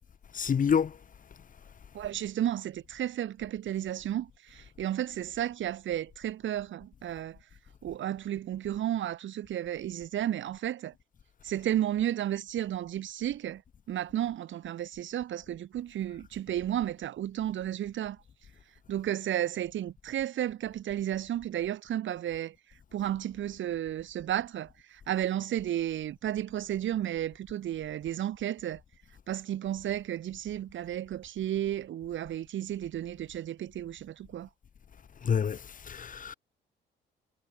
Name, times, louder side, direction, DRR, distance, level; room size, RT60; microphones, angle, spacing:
voice 1, 0.3-0.9 35.2-35.6 35.9-36.3, left 7 dB, 40° left, 1.2 m, -27 dB
voice 2, 1.9-7.4 7.8-10.9 11.4-13.6 13.9-18.2 18.9-22.5 22.9-28.8 29.3-34.5, right 11 dB, 75° right, 4.3 m, -33 dB
cardioid pair, 90°, 20 cm